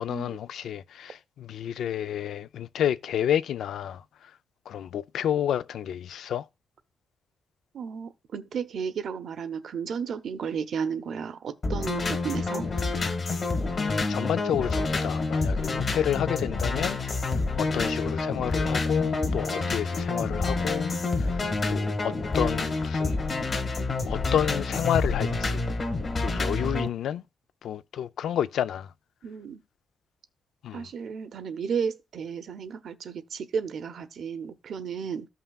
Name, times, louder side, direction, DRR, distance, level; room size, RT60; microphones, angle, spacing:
voice 1, 0.0-4.3 4.7-6.5 13.8-23.2 24.1-25.6 26.2-27.2 27.6-28.9 30.6-30.9, left 10 dB, 85° left, 0.4 m, -30 dB
voice 2, 7.7-12.7 26.3-26.6 29.2-29.6 30.7-35.3, right 6 dB, 60° right, 0.7 m, -33 dB
sound 1, 11.6-26.9, left 3 dB, 40° left, 1.4 m, -28 dB
14.0 x 5.6 x 2.3 m
wide cardioid pair, 150°, 0 cm